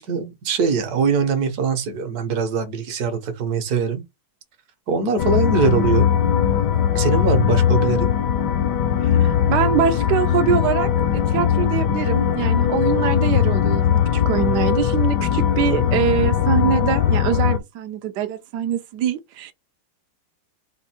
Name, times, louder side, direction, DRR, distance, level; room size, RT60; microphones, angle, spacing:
voice 1, 0.0-4.0 4.9-6.1 6.9-8.1, right 5 dB, 60° right, 1.1 m, -22 dB
sound 1, 5.2-17.6, left 9 dB, 75° left, 0.9 m, -19 dB
voice 2, 9.0-19.5, right 9 dB, 85° right, 0.9 m, -24 dB
4.4 x 2.5 x 4.2 m
omnidirectional pair, 2.4 m